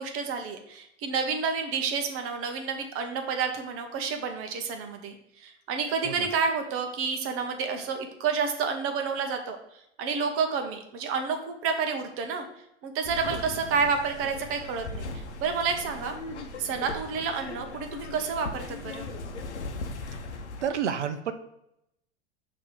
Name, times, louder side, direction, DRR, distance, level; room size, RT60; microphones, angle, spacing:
voice 1, 0.0-9.6 10.0-12.4 12.8-16.2 16.6-19.1, right 5 dB, 40° right, 5 dB, 1.0 m, -30 dB
sound 1, 13.0-20.7, left 2 dB, 75° left, 0.8 m, -38 dB
voice 2, 20.6-21.3, right 8 dB, 80° right, 9 dB, 0.7 m, -29 dB
6.4 x 3.0 x 4.9 m, 0.82 s
figure-of-eight pair, 85°, 34 cm